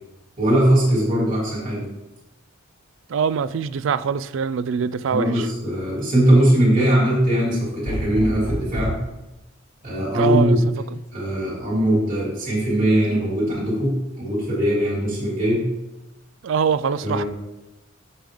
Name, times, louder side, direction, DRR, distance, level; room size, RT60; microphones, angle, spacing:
voice 1, 0.4-1.9 5.1-9.0 9.8-10.6 11.1-15.7 17.0-17.3, right 1 dB, 40° right, -8 dB, 3.0 m, -20 dB
voice 2, 3.1-5.5 10.2-10.6 10.9-11.0 16.4-17.2, right 6 dB, 65° right, 16 dB, 0.3 m, -23 dB
sound 1, 7.9-9.1 10.8-11.3, equal, 15° left, 1.0 m, -28 dB
7.6 x 6.8 x 3.8 m, 0.97 s
head